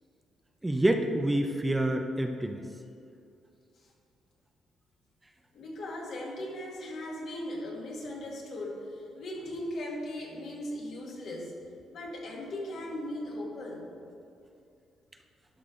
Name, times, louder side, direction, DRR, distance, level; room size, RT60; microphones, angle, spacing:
voice 1, 0.6-2.7, right 1 dB, 15° right, 5 dB, 0.6 m, -27 dB
voice 2, 5.5-11.5 11.9-13.9, left 1 dB, 65° left, -2 dB, 1.9 m, -38 dB
11.5 x 5.5 x 3.8 m, 2.6 s
cardioid pair, 90°, 0 cm